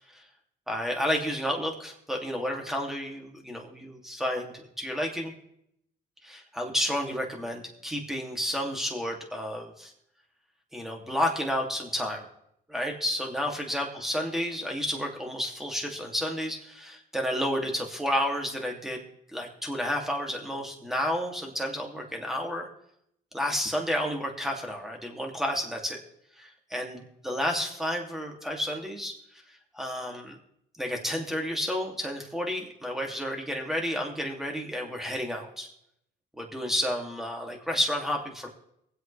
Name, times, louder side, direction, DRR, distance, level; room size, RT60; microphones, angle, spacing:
voice 1, 0.7-5.3 6.2-9.9 10.7-12.2 12.7-19.0 19.3-22.7 23.3-26.0 26.4-29.1 29.7-30.4 30.8-35.7 36.4-38.5, equal, ahead, 1 dB, 2.7 m, -31 dB
23.5 x 8.1 x 3.4 m, 0.75 s
cardioid pair, 90°, 20 cm